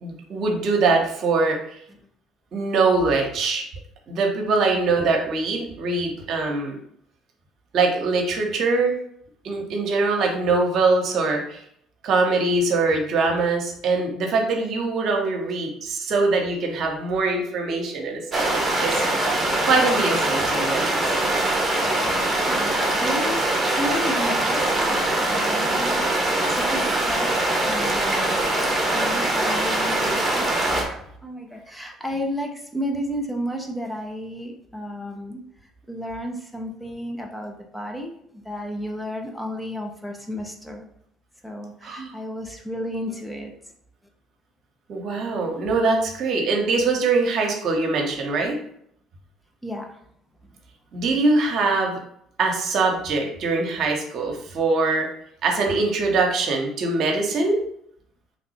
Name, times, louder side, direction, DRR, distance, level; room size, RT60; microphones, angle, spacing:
voice 1, 0.0-1.8 2.5-3.6 4.1-6.8 7.7-9.0 9.4-11.6 12.0-19.3 19.6-21.0 41.8-42.1 44.9-48.6 50.9-52.0 52.4-55.1 55.4-57.6, right 3 dB, 60° right, 2 dB, 1.0 m, -23 dB
sound 1, 18.3-30.8, right 1 dB, 25° right, 1.1 m, -22 dB
voice 2, 22.5-27.3 27.6-28.4 28.9-30.5 30.8-35.4 35.9-40.9 41.4-43.7 49.6-50.0, equal, 5° left, 2 dB, 0.8 m, -33 dB
3.2 x 2.6 x 4.1 m, 0.68 s
hypercardioid pair, 65°, 0 cm